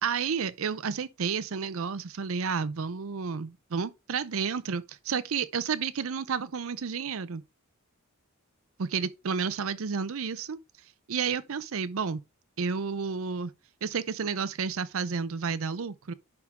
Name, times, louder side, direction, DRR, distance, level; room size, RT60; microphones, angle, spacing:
voice 1, 0.0-7.4 8.8-10.6 11.1-12.2 12.6-13.5 13.8-16.1, right 6 dB, 65° right, 0.5 m, -31 dB
10.5 x 3.6 x 3.7 m
head